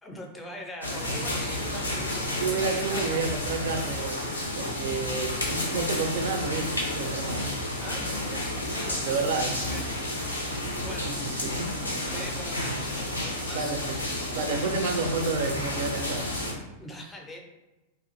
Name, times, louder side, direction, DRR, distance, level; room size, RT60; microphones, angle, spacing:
voice 1, 0.0-3.3 7.8-10.0 10.8-11.1 12.1-13.7 16.8-17.4, equal, 10° left, 1 dB, 0.4 m, -42 dB
sound 1, 0.8-16.5, left 1 dB, 80° left, 0.5 m, -31 dB
voice 2, 2.4-4.2 4.5-7.5 9.0-9.6 11.0-11.7 13.5-13.8 14.3-16.6, right 4 dB, 55° right, 5 dB, 0.3 m, -30 dB
2.4 x 2.4 x 2.6 m, 1.0 s
figure-of-eight pair, 90°, 0 cm